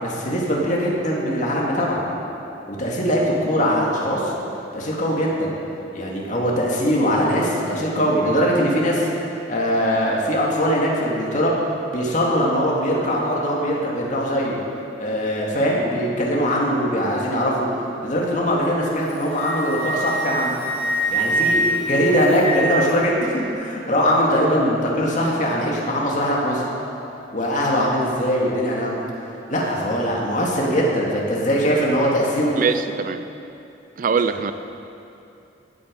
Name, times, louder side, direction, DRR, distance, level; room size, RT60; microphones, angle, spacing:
voice 1, 0.0-2.0 2.7-4.3 4.7-5.5 5.9-9.1 9.5-11.5 11.9-14.6 15.0-17.7 18.0-20.5 21.1-26.6 27.3-29.0 29.5-32.6, equal, 45° left, -3 dB, 2.2 m, -21 dB
Wind instrument woodwind instrument, 19.0-22.9, right 1 dB, 10° left, 2.5 m, -24 dB
voice 2, 32.6-33.2 34.0-34.5, right 5 dB, 45° right, 10 dB, 0.4 m, -22 dB
15.5 x 8.6 x 5.3 m, 2.8 s
head